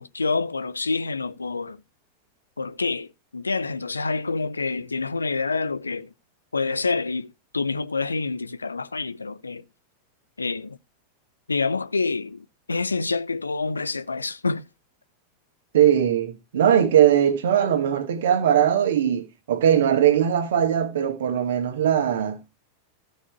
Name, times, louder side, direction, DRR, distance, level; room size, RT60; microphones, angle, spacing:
voice 1, 0.0-1.8 2.6-6.1 6.5-9.6 10.4-10.8 11.5-14.7, left 4 dB, 80° left, 0.8 m, -27 dB
voice 2, 15.7-22.4, right 9 dB, 60° right, 2.1 m, -20 dB
16.0 x 5.6 x 4.7 m
figure-of-eight pair, 90°, 0 cm